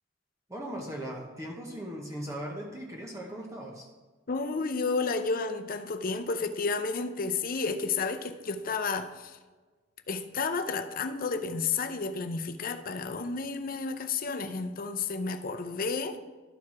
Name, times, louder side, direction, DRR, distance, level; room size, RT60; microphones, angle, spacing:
voice 1, 0.5-3.9, equal, 15° right, 0.9 m, -38 dB
voice 2, 4.3-9.4 10.1-16.2, left 4 dB, 45° left, 0.6 m, -31 dB
12.0 x 4.6 x 4.8 m
head